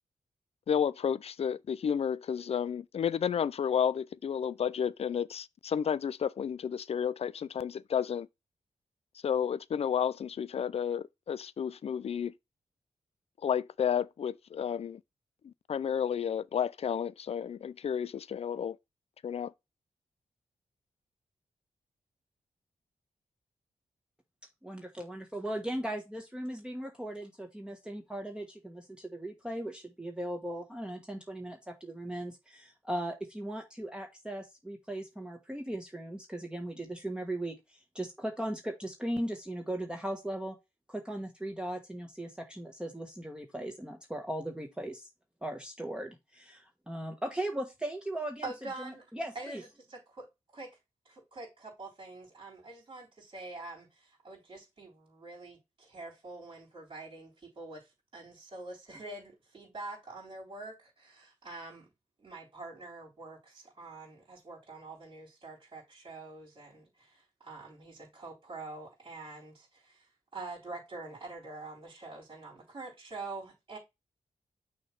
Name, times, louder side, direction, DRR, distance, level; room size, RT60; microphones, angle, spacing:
voice 1, 0.7-8.3 9.2-12.3 13.4-15.0 15.4-18.8 19.2-19.5, left 8 dB, 55° left, 0.4 m, -31 dB
voice 2, 24.6-40.5 40.9-45.1 45.4-48.5 48.8-49.6, right 1 dB, 5° right, 1.3 m, -38 dB
voice 3, 48.4-49.1 49.4-49.6 49.9-50.3 50.5-50.7 51.1-61.9 62.2-73.8, right 2 dB, 40° right, 3.6 m, -45 dB
6.3 x 3.2 x 5.9 m
wide cardioid pair, 130°, 13 cm